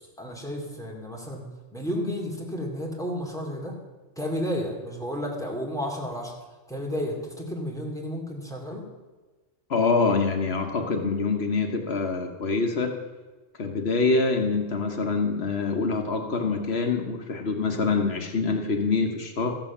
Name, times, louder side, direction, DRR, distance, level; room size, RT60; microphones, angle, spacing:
voice 1, 0.2-1.5 1.7-3.7 4.2-6.3 6.7-8.8, equal, 5° left, -1 dB, 2.4 m, -32 dB
voice 2, 9.7-12.9 13.6-19.5, left 4 dB, 70° left, 4 dB, 1.3 m, -25 dB
14.0 x 7.5 x 7.1 m, 1.3 s
omnidirectional pair, 1.1 m